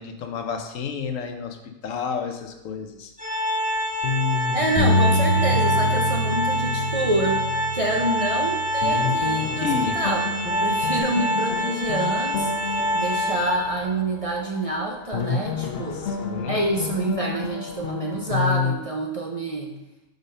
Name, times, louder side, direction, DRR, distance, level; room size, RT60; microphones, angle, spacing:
voice 1, 0.0-3.1 9.6-10.0 15.9-16.6, left 6 dB, 85° left, 5 dB, 1.1 m, -31 dB
Organ, 3.2-13.9, equal, 5° right, 1.4 m, -26 dB
sound 1, 3.7-3.8 4.0-8.3 8.6-14.8 15.1-18.7, left 5 dB, 55° left, 0.9 m, -30 dB
voice 2, 4.5-7.4 7.7-9.7 9.9-16.1 16.5-19.8, right 1 dB, 40° right, -1 dB, 0.5 m, -27 dB
Bass guitar, 4.8-11.0, equal, 30° left, 0.6 m, -27 dB
5.2 x 4.1 x 5.4 m, 0.94 s
omnidirectional pair, 1.3 m